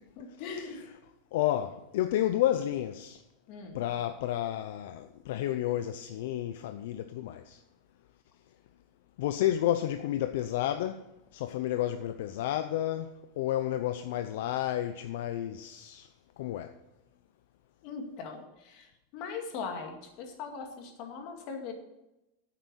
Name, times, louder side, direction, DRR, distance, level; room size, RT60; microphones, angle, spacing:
voice 1, 0.2-0.8 3.5-3.8 17.8-21.7, left 5 dB, 40° left, 2.1 m, -40 dB
voice 2, 1.3-3.2 3.7-7.6 9.2-11.0 11.3-16.1 16.4-16.7, left 12 dB, 65° left, 0.6 m, -31 dB
9.8 x 8.3 x 6.2 m
supercardioid pair, 170°, 0 cm